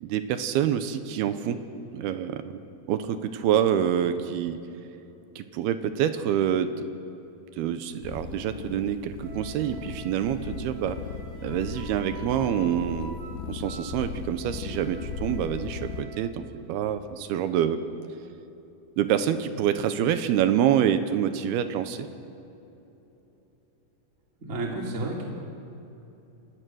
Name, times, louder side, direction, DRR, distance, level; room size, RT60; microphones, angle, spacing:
voice 1, 0.0-1.6 1.9-2.6 2.9-4.6 5.4-6.7 7.5-11.0 11.4-13.2 13.5-17.8 19.0-22.1, right 9 dB, 75° right, 10 dB, 2.4 m, -26 dB
sound 1, 8.0-16.0, left 6 dB, 75° left, 3.1 m, -38 dB
Wind instrument woodwind instrument, 9.2-16.3, right 3 dB, 50° right, 2.7 m, -47 dB
voice 2, 24.4-25.2, right 2 dB, 20° right, -1 dB, 2.4 m, -31 dB
27.5 x 17.0 x 6.3 m, 3.0 s
omnidirectional pair, 5.3 m